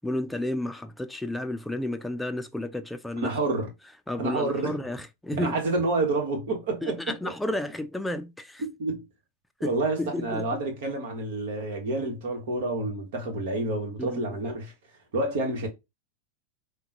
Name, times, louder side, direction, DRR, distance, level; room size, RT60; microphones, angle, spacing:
voice 1, 0.0-3.5 4.1-5.6 6.8-8.6 9.6-10.5 14.0-14.2, left 1 dB, 5° left, 0.5 m, -32 dB
voice 2, 3.2-3.7 4.2-4.7 5.3-7.0 7.3-7.4 8.6-9.0 9.6-14.7 15.1-15.7, right 2 dB, 65° right, 1.2 m, -28 dB
3.5 x 2.2 x 2.9 m
hypercardioid pair, 100°, 0 cm